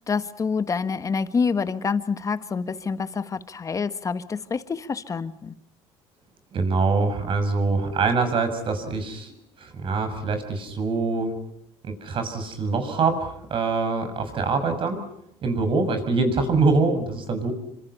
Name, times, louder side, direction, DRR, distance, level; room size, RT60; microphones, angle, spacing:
voice 1, 0.1-5.5, left 5 dB, 30° left, 12 dB, 1.4 m, -27 dB
voice 2, 6.5-9.3 9.6-11.3 11.8-13.2 13.5-15.0 15.4-17.5, right 4 dB, 50° right, 8 dB, 6.3 m, -24 dB
27.5 x 25.5 x 5.6 m, 0.75 s
cardioid pair, 110°, 11 cm